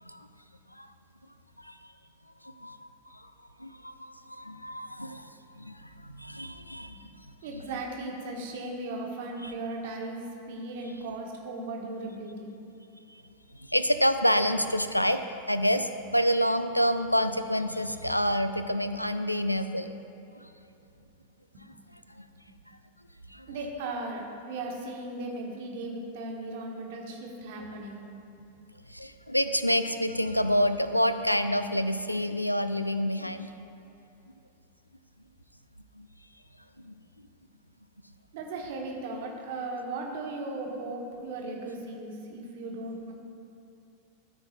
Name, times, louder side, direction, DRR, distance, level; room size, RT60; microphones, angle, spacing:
voice 1, 2.4-3.3 3.6-5.3 5.6-7.1 9.4-9.5 11.0-11.1 13.1-13.2 13.7-19.9 20.4-20.5 22.2-22.3 23.3-23.5 28.9-33.5 36.0-36.1 36.8-37.0, equal, 90° left, 10 dB, 0.3 m, -28 dB
voice 2, 7.4-10.2 10.5-12.5 23.5-28.0 38.3-43.1, right 2 dB, 50° right, 0 dB, 1.3 m, -37 dB
13.0 x 4.6 x 4.3 m, 2.7 s
figure-of-eight pair, 90°, 0 cm